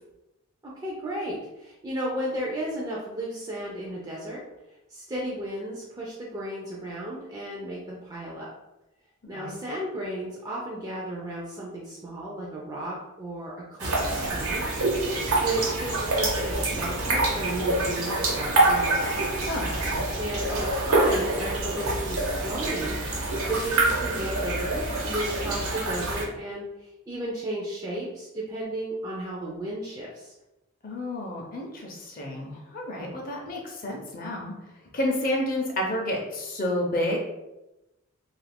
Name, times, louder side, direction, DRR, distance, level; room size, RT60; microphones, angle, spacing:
voice 1, 0.6-4.4 4.9-8.5 9.3-14.1 14.3-19.0 20.2-23.0 23.5-30.3, right 1 dB, 15° right, -5 dB, 0.4 m, -34 dB
sound 1, 13.8-26.2, right 2 dB, 75° right, 0.8 m, -26 dB
voice 2, 19.5-20.0 30.8-34.5 34.9-37.2, left 1 dB, 40° left, 0 dB, 0.5 m, -30 dB
2.7 x 2.4 x 3.4 m, 0.96 s
head